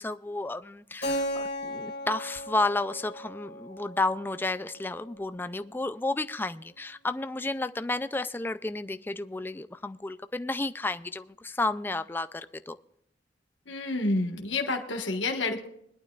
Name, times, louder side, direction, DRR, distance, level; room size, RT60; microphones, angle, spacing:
voice 1, 0.0-12.8, left 2 dB, 10° left, 12 dB, 0.3 m, -32 dB
Keyboard (musical), 1.0-5.6, equal, 60° left, 2.3 m, -36 dB
voice 2, 13.7-15.7, left 2 dB, 85° left, 3 dB, 1.4 m, -29 dB
21.0 x 11.5 x 2.4 m, 0.74 s
head